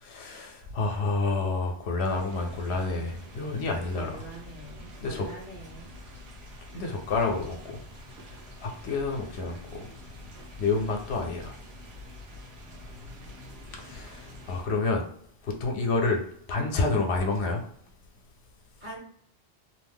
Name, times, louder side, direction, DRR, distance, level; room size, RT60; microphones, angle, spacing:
voice 1, 0.0-4.2 5.0-5.3 6.7-7.6 8.6-9.8 10.6-11.6 13.8-15.0 15.4-16.2 16.5-17.6, left 3 dB, 75° left, 2 dB, 0.8 m, -29 dB
sound 1, 2.0-14.7, left 1 dB, 70° right, 1.0 m, -46 dB
voice 2, 4.0-5.9 18.8-19.0, right 1 dB, 45° right, -6 dB, 1.3 m, -43 dB
2.6 x 2.0 x 3.4 m, 0.64 s
omnidirectional pair, 1.1 m